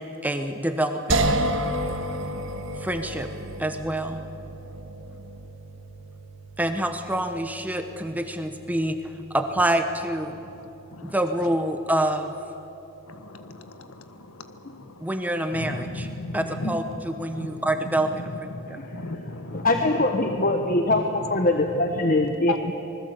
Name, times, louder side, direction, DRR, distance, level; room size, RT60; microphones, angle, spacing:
voice 1, 0.0-1.4 2.8-3.3 3.6-4.2 6.6-10.3 11.0-12.3 15.0-16.1 16.3-18.1, right 1 dB, 5° right, 7 dB, 1.0 m, -26 dB
sound 1, 1.1-14.2, right 1 dB, 60° right, 1.7 m, -33 dB
voice 2, 10.3-11.2 13.0-15.2 15.5-20.0 20.2-21.0 21.6-21.8 22.2-22.6, left 2 dB, 80° left, 9 dB, 1.5 m, -36 dB
voice 3, 18.7-19.0 19.5-22.7, left 2 dB, 40° left, 4 dB, 1.2 m, -23 dB
26.0 x 20.5 x 8.2 m, 3.0 s
head